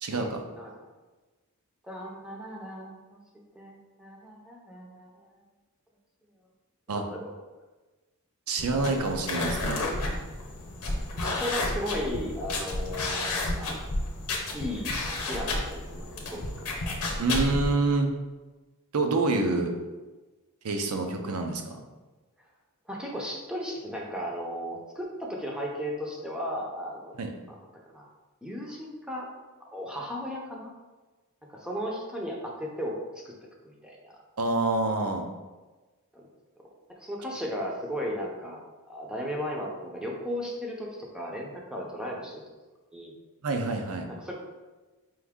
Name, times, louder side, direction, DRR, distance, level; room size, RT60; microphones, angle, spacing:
voice 1, 0.0-0.4 6.9-7.1 8.5-9.9 17.2-18.1 18.9-19.7 20.6-21.8 27.2-27.3 34.4-35.2 43.4-44.1, right 3 dB, 75° right, 4 dB, 0.6 m, -27 dB
voice 2, 0.6-0.9 1.8-3.2 3.5-5.3 6.9-7.3 11.1-13.8 14.5-14.9 15.3-17.0 22.9-27.2 27.5-27.6 27.9-28.1 28.4-29.3 29.6-30.7 31.5-32.9 33.2-33.3 33.6-34.2 36.1-36.2 36.9-38.6 38.9-42.4 42.9-43.1 44.2-44.4, equal, 5° right, -2 dB, 0.6 m, -36 dB
sound 1, 8.6-17.7, left 2 dB, 80° left, 0.8 m, -31 dB
4.6 x 2.6 x 3.6 m, 1.2 s
head